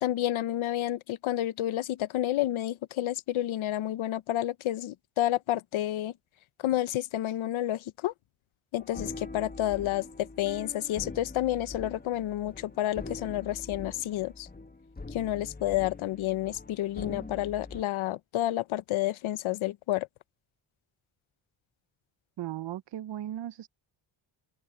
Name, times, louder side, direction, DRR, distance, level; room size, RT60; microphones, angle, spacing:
voice 1, 0.0-6.1 6.6-8.1 8.7-14.5 15.1-20.1, left 13 dB, 85° left, 0.8 m, -30 dB
sound 1, 8.7-17.8, left 3 dB, 20° left, 1.6 m, -43 dB
voice 2, 22.4-23.7, right 12 dB, 65° right, 0.7 m, -36 dB
open air
cardioid pair, 80°, 47 cm